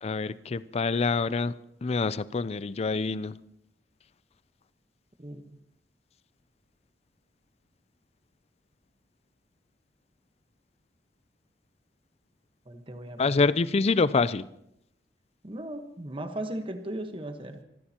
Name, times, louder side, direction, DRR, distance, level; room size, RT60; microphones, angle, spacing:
voice 1, 0.0-1.5 1.8-3.3 13.2-14.5, left 4 dB, 35° left, 0.4 m, -26 dB
voice 2, 12.6-13.6 15.4-17.6, right 1 dB, 30° right, 1.2 m, -37 dB
25.5 x 14.5 x 2.9 m
head